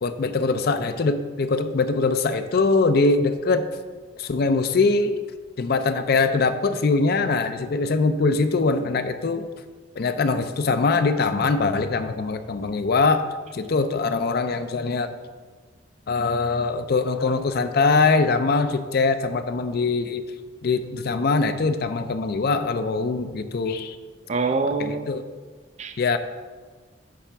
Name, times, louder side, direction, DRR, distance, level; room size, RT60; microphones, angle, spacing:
voice 1, 0.0-3.7 4.2-5.1 5.6-9.4 10.0-13.3 13.5-15.1 16.1-20.2 20.6-24.0 24.8-25.2 26.0-26.2, left 3 dB, 55° left, 0.4 m, -22 dB
voice 2, 24.3-25.1 25.8-26.0, right 4 dB, 35° right, 0.4 m, -25 dB
8.4 x 3.4 x 5.9 m
head